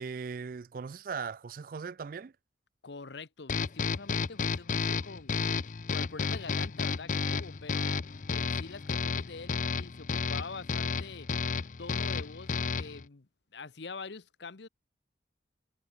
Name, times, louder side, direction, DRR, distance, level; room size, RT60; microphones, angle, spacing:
voice 1, 0.0-2.3, right 5 dB, 50° right, 0.4 m, -38 dB
voice 2, 2.8-5.4 5.9-8.0 8.3-11.3 11.8-14.7, left 4 dB, 75° left, 0.9 m, -45 dB
sound 1, 3.5-13.0, left 5 dB, 45° left, 0.5 m, -32 dB
head